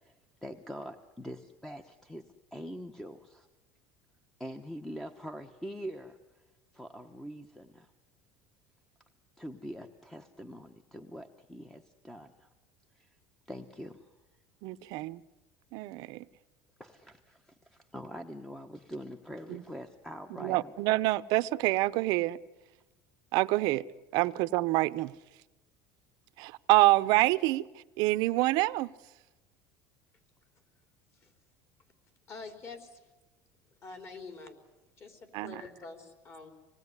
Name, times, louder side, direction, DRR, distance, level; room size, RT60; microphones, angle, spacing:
voice 1, 0.0-2.2 2.5-3.5 4.4-6.4 6.7-7.9 9.4-12.5 12.9-13.2 13.5-14.1 16.8-20.7, equal, 5° left, 1.1 m, -44 dB
voice 2, 14.6-15.2 15.7-16.3 19.5-19.6 20.4-22.4 23.3-23.8 24.1-25.1 26.4-27.7 28.0-28.9 35.3-35.6, right 19 dB, 65° right, 0.8 m, -26 dB
voice 3, 32.3-33.1 33.8-34.6 35.0-36.5, left 4 dB, 35° left, 3.8 m, -46 dB
26.0 x 19.0 x 9.8 m
cardioid pair, 140°, 7 cm